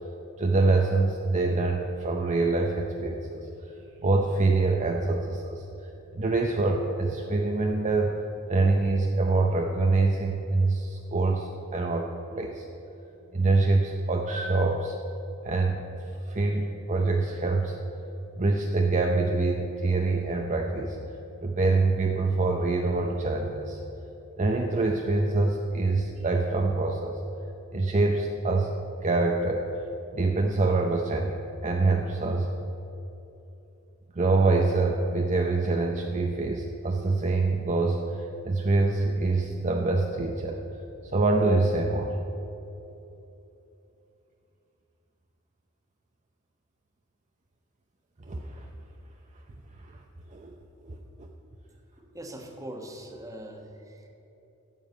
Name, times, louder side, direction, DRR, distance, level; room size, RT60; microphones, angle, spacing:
voice 1, 0.4-3.5 4.0-8.2 8.5-12.7 13.3-15.0 15.4-15.8 16.3-17.8 18.4-21.0 21.4-23.8 24.4-27.1 27.7-29.6 30.1-32.5 34.1-40.6 41.0-42.1 48.3-48.7 49.8-49.9 50.3-50.6 50.8-51.0, right 3 dB, 35° right, 1 dB, 0.7 m, -25 dB
voice 2, 51.9-54.1, right 1 dB, 15° right, 2 dB, 1.2 m, -42 dB
9.2 x 7.3 x 8.3 m, 3.0 s
head